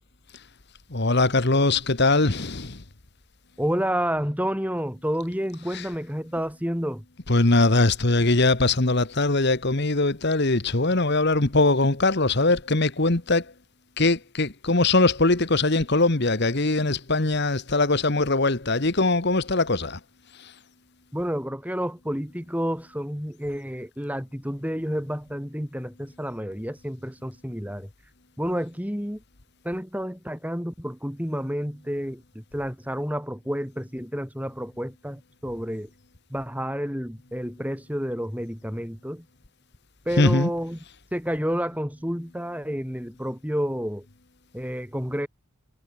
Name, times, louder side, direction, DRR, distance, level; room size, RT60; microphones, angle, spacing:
voice 1, 0.9-2.8 7.3-13.4 14.0-20.0 40.2-40.5, left 2 dB, 50° left, 1.5 m, -21 dB
voice 2, 3.6-7.0 21.1-27.9 28.4-29.2 29.6-35.9 36.3-39.2 40.1-40.8 41.1-44.1 44.5-45.3, equal, 5° right, 7.2 m, -30 dB
head